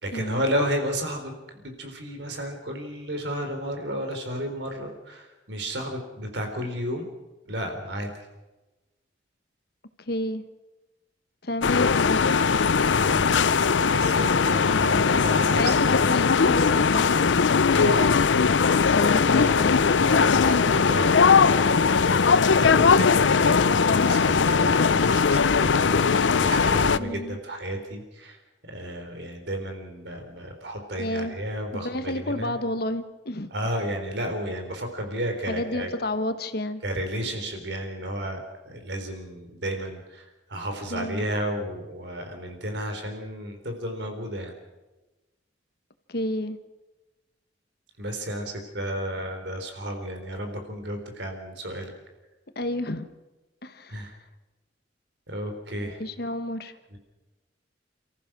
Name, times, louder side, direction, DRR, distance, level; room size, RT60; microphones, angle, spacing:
voice 1, 0.0-7.1 7.5-8.1 13.0-13.4 13.8-16.2 17.7-18.2 19.3-28.4 28.7-32.6 33.5-35.9 36.8-44.5 48.0-51.9 53.9-54.1 55.3-56.0 56.9-57.0, equal, 70° right, 5 dB, 3.8 m, -32 dB
voice 2, 10.1-10.4 11.4-12.4 15.6-17.4 18.9-19.9 27.0-27.4 31.0-31.3 31.7-33.5 35.5-36.8 40.9-41.3 46.1-46.6 52.6-53.1 53.6-54.0 55.8-56.7, left 1 dB, 55° left, 10 dB, 1.3 m, -30 dB
sound 1, 11.6-27.0, left 5 dB, 85° left, 0.6 m, -20 dB
29.5 x 14.5 x 6.1 m, 1.1 s
head